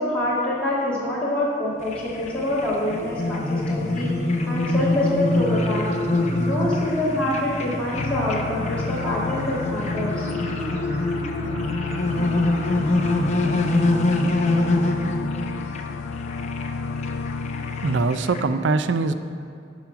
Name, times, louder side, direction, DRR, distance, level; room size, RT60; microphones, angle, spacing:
voice 1, 0.0-5.9 6.4-10.3, left 1 dB, 5° left, -10 dB, 2.1 m, -26 dB
sound 1, 1.8-18.4, left 2 dB, 40° left, 0.7 m, -25 dB
Singing, 3.5-14.3, right 1 dB, 45° right, 2.1 m, -35 dB
sound 2, 8.0-18.1, left 5 dB, 90° left, 0.3 m, -31 dB
voice 2, 17.1-19.1, right 3 dB, 90° right, 11 dB, 0.5 m, -24 dB
10.5 x 6.1 x 5.8 m, 2.5 s
head